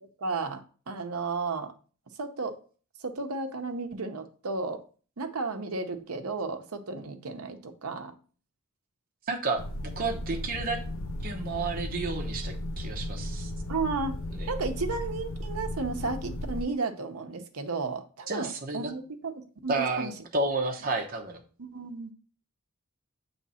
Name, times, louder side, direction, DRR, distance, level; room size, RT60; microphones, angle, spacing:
voice 1, 0.0-0.6 0.9-1.7 2.2-2.6 3.0-4.8 5.2-8.1 13.7-14.1 14.5-20.1 21.6-22.1, right 4 dB, 85° right, 7 dB, 0.8 m, -33 dB
voice 2, 9.3-10.8 11.2-13.5 14.3-14.5 18.3-18.9 19.7-21.4, right 3 dB, 40° right, 2 dB, 0.9 m, -31 dB
sound 1, 9.6-16.6, left 1 dB, 65° left, 0.6 m, -35 dB
7.3 x 3.2 x 4.2 m, 0.40 s
head